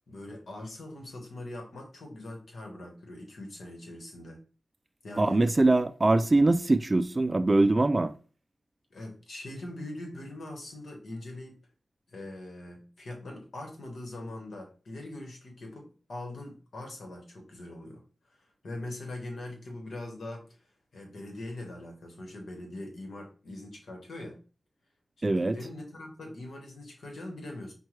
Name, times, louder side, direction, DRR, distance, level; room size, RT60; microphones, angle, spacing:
voice 1, 0.1-4.4 5.0-5.4 8.9-11.6 12.1-24.4 25.2-27.7, left 1 dB, 75° left, 1.1 m, -42 dB
voice 2, 5.2-8.1 25.2-25.6, right 2 dB, 35° right, 0.3 m, -23 dB
5.4 x 2.2 x 3.1 m
cardioid pair, 55°, 0 cm